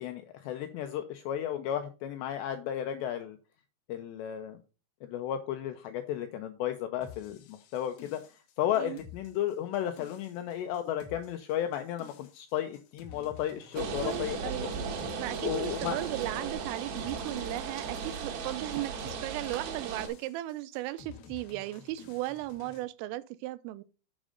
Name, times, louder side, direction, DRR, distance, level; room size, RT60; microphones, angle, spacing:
voice 1, 0.0-3.4 3.9-4.6 5.1-8.2 8.6-14.5 15.4-16.0, left 11 dB, 85° left, 2.5 m, -34 dB
sound 1, 7.0-22.8, left 6 dB, 70° left, 2.5 m, -52 dB
sound 2, 13.8-20.1, right 5 dB, 65° right, 3.2 m, -36 dB
voice 2, 13.8-14.7 15.2-23.8, right 16 dB, 85° right, 3.2 m, -36 dB
7.5 x 6.2 x 5.1 m
omnidirectional pair, 5.7 m